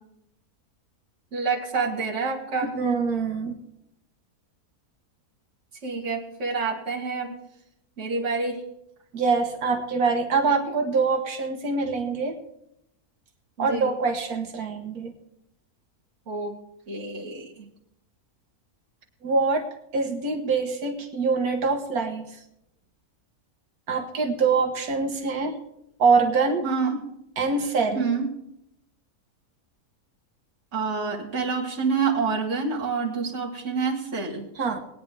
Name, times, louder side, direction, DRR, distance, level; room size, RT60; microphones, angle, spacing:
voice 1, 1.3-2.7 5.8-7.4 8.0-8.6 13.6-13.9 16.3-16.5 16.9-17.7 26.6-27.0 27.9-28.3 30.7-34.4, right 4 dB, 50° right, -4 dB, 2.6 m, -27 dB
voice 2, 2.7-3.6 9.1-12.4 13.6-15.1 19.2-19.7 19.9-22.3 23.9-25.6 26.0-26.6 27.4-28.1 34.6-34.8, right 4 dB, 80° right, 4 dB, 1.7 m, -24 dB
21.5 x 9.4 x 3.4 m, 0.77 s
omnidirectional pair, 1.6 m